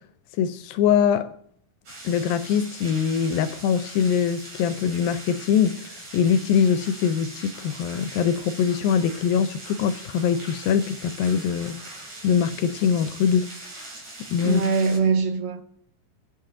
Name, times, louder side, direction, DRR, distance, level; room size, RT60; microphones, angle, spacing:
voice 1, 0.4-1.3 2.0-11.8 12.2-13.5 14.3-14.7, left 7 dB, 80° left, 2.3 m, -23 dB
sound 1, 1.9-15.0, right 2 dB, 45° right, 4.5 m, -41 dB
voice 2, 14.4-15.6, right 5 dB, 75° right, 2.2 m, -22 dB
24.5 x 9.0 x 3.7 m
omnidirectional pair, 4.4 m